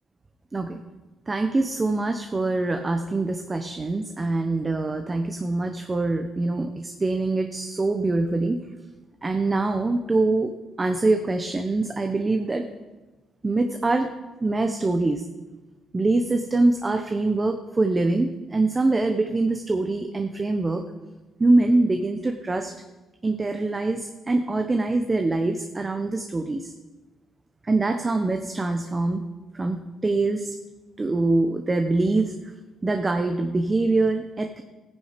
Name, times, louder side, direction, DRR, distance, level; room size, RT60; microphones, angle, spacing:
voice 1, 1.3-8.6 9.2-10.5 10.8-12.7 13.4-14.1 14.4-15.2 15.9-20.8 21.4-22.7 23.2-26.7 27.6-29.2 29.5-30.6 31.0-32.3 32.8-34.6, right 2 dB, 25° right, 6 dB, 0.9 m, -24 dB
14.0 x 9.9 x 5.2 m, 1.2 s
cardioid pair, 90°, 0 cm